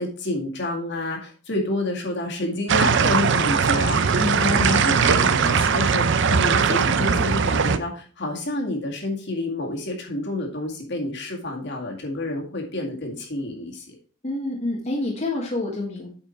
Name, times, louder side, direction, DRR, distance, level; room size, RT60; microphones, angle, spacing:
voice 1, 0.0-14.0, left 2 dB, 60° left, 1 dB, 2.1 m, -29 dB
sound 1, 2.7-7.8, right 6 dB, 60° right, 0.6 m, -20 dB
voice 2, 4.2-5.0 14.2-16.1, left 2 dB, 35° left, -1 dB, 1.4 m, -28 dB
8.3 x 4.9 x 4.4 m, 0.40 s
head